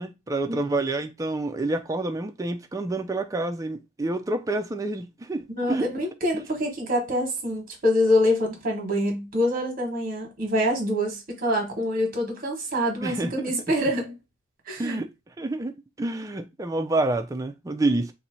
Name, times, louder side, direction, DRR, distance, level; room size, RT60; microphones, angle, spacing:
voice 1, 0.0-5.9 13.0-13.5 14.8-15.1 15.4-18.1, right 2 dB, 15° right, 0.4 m, -28 dB
voice 2, 5.5-14.2 14.7-15.0, left 1 dB, 45° right, 1.2 m, -25 dB
2.7 x 2.6 x 4.3 m
head